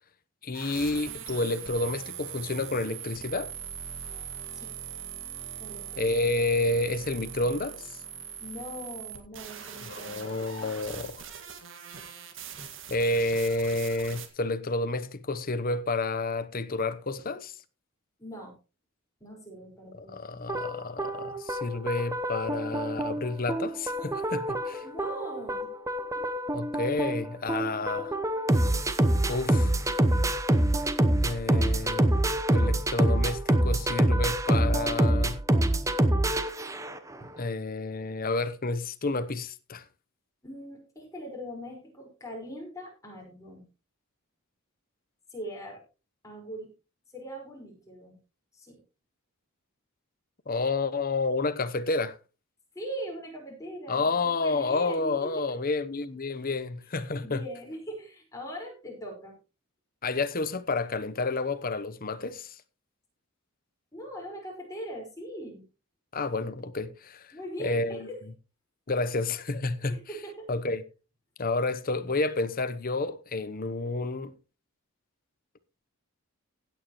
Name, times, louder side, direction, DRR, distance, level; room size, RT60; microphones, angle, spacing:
voice 1, 0.4-3.5 6.0-7.9 9.9-11.3 12.9-17.5 20.1-24.8 26.5-28.2 29.3-29.7 31.2-32.2 32.5-35.4 37.4-39.8 50.5-52.2 53.9-57.4 60.0-62.5 66.1-67.3 67.6-68.1 68.9-70.0 70.5-70.8 71.4-74.3, left 3 dB, 40° left, 0.9 m, -30 dB
sound 1, 0.5-14.3, right 8 dB, 60° right, 2.0 m, -41 dB
voice 2, 5.6-6.0 8.4-10.8 18.2-18.6 19.2-20.5 24.8-25.7 26.1-26.3 37.2-37.3 40.4-43.6 45.3-45.8 46.2-46.7 47.1-48.2 48.5-48.8 52.7-55.4 57.2-59.4 63.9-65.7 67.3-68.3 69.9-70.5, equal, 15° left, 5.0 m, -41 dB
sound 2, 20.5-37.1, right 1 dB, 15° right, 0.9 m, -26 dB
16.5 x 9.0 x 3.1 m
head